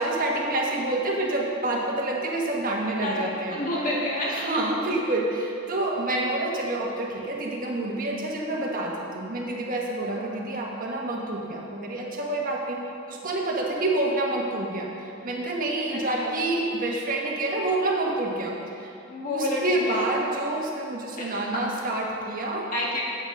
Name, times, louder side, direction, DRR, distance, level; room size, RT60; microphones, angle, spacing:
voice 1, 0.0-3.6 4.2-12.8 13.1-18.5 18.8-18.9 19.3-22.7, right 2 dB, 45° right, -1 dB, 1.4 m, -28 dB
voice 2, 3.0-4.5 10.2-10.4 15.9-16.3 19.1-20.0 21.2-21.5 22.7-23.0, left 1 dB, 45° left, -5 dB, 2.2 m, -30 dB
9.1 x 7.9 x 5.4 m, 2.5 s
head